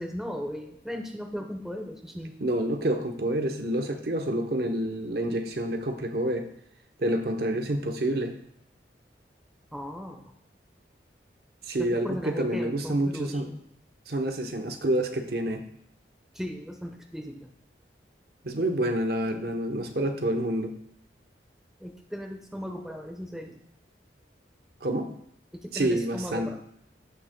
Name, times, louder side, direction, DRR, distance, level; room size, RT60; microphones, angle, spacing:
voice 1, 0.0-2.3 9.7-10.2 11.8-13.6 16.3-17.5 21.8-23.6 25.5-26.6, equal, 5° right, 3 dB, 0.9 m, -37 dB
voice 2, 2.4-6.5 7.0-8.4 11.6-13.5 14.1-15.6 18.4-20.7 24.8-25.1 25.7-26.5, right 1 dB, 60° right, 5 dB, 0.9 m, -28 dB
16.0 x 6.4 x 2.2 m, 0.73 s
head